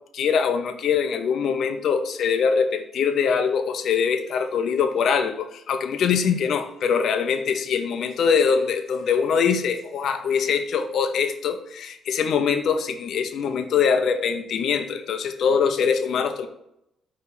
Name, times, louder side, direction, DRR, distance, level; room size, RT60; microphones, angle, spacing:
voice 1, 0.1-16.5, left 6 dB, 65° left, 8 dB, 0.7 m, -23 dB
6.0 x 3.2 x 5.5 m, 0.80 s
cardioid pair, 90°, 0 cm